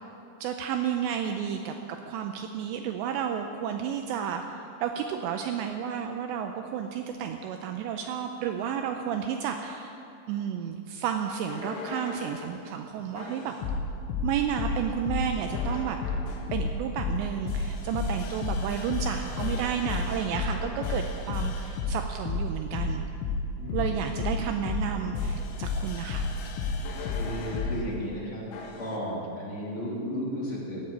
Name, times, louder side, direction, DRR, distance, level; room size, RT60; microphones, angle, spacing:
voice 1, 0.4-10.0 10.3-13.5 14.2-16.0 16.5-23.0 23.7-26.3, right 8 dB, 85° right, 5 dB, 2.6 m, -32 dB
sound 1, 11.5-12.5 13.2-27.8 28.5-28.9, left 4 dB, 75° left, 3.4 m, -31 dB
voice 2, 23.6-24.6 25.1-25.4 27.2-28.4 28.8-30.8, equal, 25° left, -5 dB, 1.8 m, -35 dB
15.5 x 7.6 x 8.7 m, 2.7 s
omnidirectional pair, 5.6 m